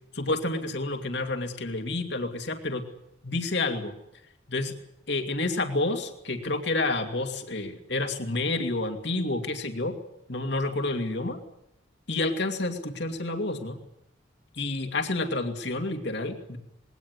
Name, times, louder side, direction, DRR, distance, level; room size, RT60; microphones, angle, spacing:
voice 1, 0.1-2.9 3.2-3.9 4.5-4.7 5.1-10.0 10.3-11.4 12.1-13.8 14.5-16.6, left 2 dB, 60° left, 5 dB, 2.7 m, -29 dB
21.0 x 18.0 x 9.9 m, 0.81 s
head